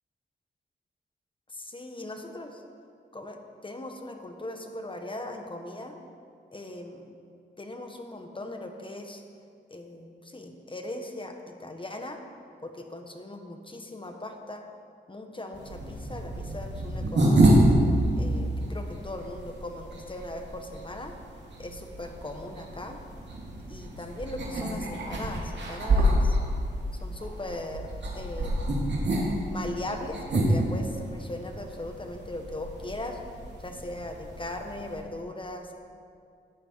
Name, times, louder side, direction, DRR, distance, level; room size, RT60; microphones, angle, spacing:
voice 1, 1.7-2.6 3.1-6.0 6.5-7.1 7.6-9.2 9.7-12.2 12.6-14.6 15.1-17.6 18.2-21.1 21.6-23.1 23.7-26.4 27.0-27.9 28.1-28.7 29.5-33.2 33.6-35.7, left 1 dB, 25° left, 4 dB, 1.5 m, -39 dB
sound 1, 15.5-35.0, right 1 dB, 70° right, 2.8 m, -28 dB
14.0 x 10.0 x 4.7 m, 2.4 s
cardioid pair, 70°, 19 cm